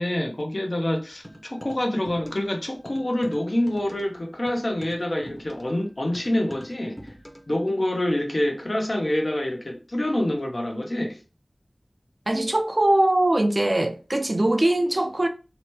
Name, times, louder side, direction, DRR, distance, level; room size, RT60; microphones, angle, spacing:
voice 1, 0.0-7.1 7.5-11.2, left 1 dB, 55° left, 0.6 m, -26 dB
sound 1, 1.2-2.6 2.8-7.6, equal, 5° left, 0.7 m, -45 dB
voice 2, 12.3-15.3, right 1 dB, 45° right, 0.4 m, -21 dB
2.9 x 2.1 x 3.0 m
wide cardioid pair, 40°, 0 cm